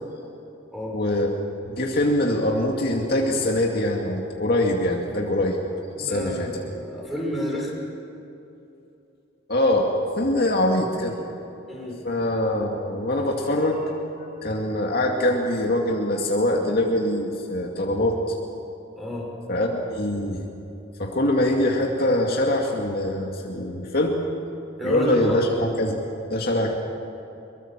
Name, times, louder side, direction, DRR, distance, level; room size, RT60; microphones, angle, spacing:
voice 1, 0.9-5.6 6.0-6.5 9.5-9.9 10.2-11.2 12.0-13.8 14.1-18.2 19.5-20.4 21.0-24.1 24.8-26.0 26.3-26.7, left 1 dB, 50° left, 0 dB, 2.4 m, -23 dB
voice 2, 6.0-7.7 11.7-12.0 19.0-19.3 24.8-25.4, equal, ahead, -3 dB, 6.1 m, -30 dB
25.5 x 23.0 x 7.5 m, 2.9 s
head